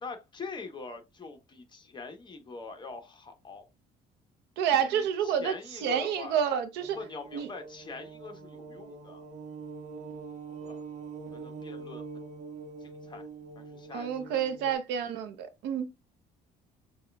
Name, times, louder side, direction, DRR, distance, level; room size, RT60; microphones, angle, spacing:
voice 1, 0.0-3.7 4.8-6.4 6.9-9.2 10.6-10.8 11.3-12.0 12.8-13.3 13.6-14.8, left 4 dB, 25° left, 0.9 m, -44 dB
voice 2, 4.6-7.0 7.3-7.5 13.9-15.9, right 8 dB, 90° right, 0.7 m, -29 dB
sound 1, 6.8-14.8, right 5 dB, 45° right, 0.9 m, -44 dB
6.1 x 2.3 x 2.2 m
cardioid pair, 110°, 17 cm